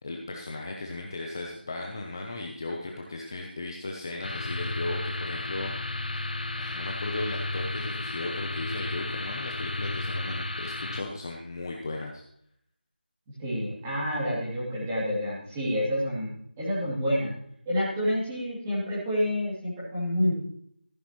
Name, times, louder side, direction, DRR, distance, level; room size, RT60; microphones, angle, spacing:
voice 1, 0.0-5.7 6.1-12.2, left 2 dB, 20° left, 0 dB, 0.8 m, -36 dB
sound 1, 4.2-11.0, left 2 dB, 55° left, 1.0 m, -33 dB
voice 2, 13.3-17.3 17.6-20.3, equal, 10° right, -8 dB, 2.8 m, -28 dB
14.0 x 10.0 x 3.1 m, 0.68 s
figure-of-eight pair, 175°, 6 cm